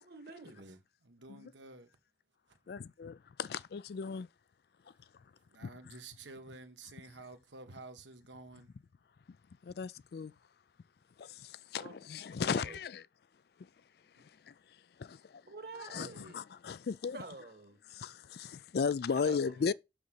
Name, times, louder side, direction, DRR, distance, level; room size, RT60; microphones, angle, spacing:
voice 1, 0.0-0.8 11.8-12.0 12.3-12.8 15.4-16.4 17.1-17.8 19.1-19.7, right 3 dB, 55° right, 1.7 m, -48 dB
voice 2, 0.6-1.9 2.5-2.6 4.9-5.0 5.3-8.7 14.2-14.3, right 3 dB, 85° right, 1.5 m, -52 dB
voice 3, 2.7-4.3 9.6-10.3 11.2-12.9 14.5-14.6 15.0-15.4 15.9-17.2 17.9-19.7, left 5 dB, 60° left, 0.3 m, -36 dB
6.7 x 6.4 x 5.5 m
head